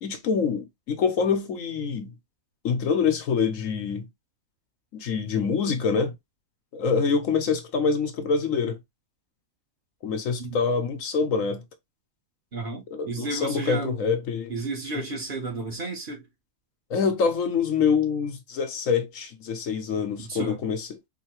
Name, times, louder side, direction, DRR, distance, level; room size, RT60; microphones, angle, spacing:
voice 1, 0.0-2.1 2.6-4.1 4.9-6.1 6.7-8.8 10.0-11.6 12.9-14.5 16.9-20.9, left 5 dB, 70° left, 1.2 m, -25 dB
voice 2, 12.5-14.0 14.5-16.3 20.2-20.6, right 2 dB, 40° right, 1.1 m, -33 dB
4.6 x 2.7 x 3.0 m
omnidirectional pair, 1.4 m